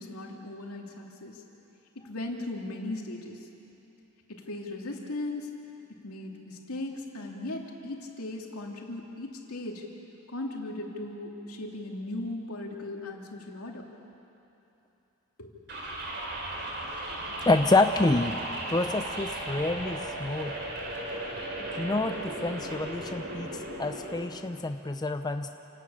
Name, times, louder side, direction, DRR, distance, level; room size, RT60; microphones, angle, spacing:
voice 1, 0.0-1.4 1.9-3.5 4.3-5.5 6.0-9.8 10.3-13.8 15.4-15.5, left 2 dB, 85° left, 0 dB, 2.6 m, -37 dB
sound 1, 15.7-24.3, right 1 dB, 50° right, 3.3 m, -36 dB
voice 2, 17.5-18.4 18.7-20.5 21.8-25.5, left 2 dB, 20° left, 7 dB, 0.5 m, -27 dB
28.5 x 12.5 x 8.6 m, 3.0 s
head